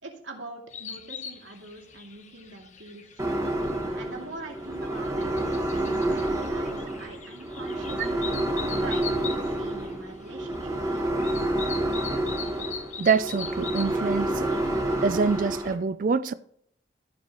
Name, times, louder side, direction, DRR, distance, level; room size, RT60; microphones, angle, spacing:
voice 1, 0.0-3.5 3.9-5.3 5.7-8.4 8.8-10.9, right 2 dB, 85° right, 2.6 m, -43 dB
sound 1, 0.7-15.7, left 6 dB, 40° left, 1.0 m, -42 dB
sound 2, 3.2-15.7, right 1 dB, 15° right, 1.4 m, -29 dB
voice 2, 13.0-14.5 15.0-16.3, right 5 dB, 45° right, 0.3 m, -25 dB
13.5 x 7.4 x 3.0 m
head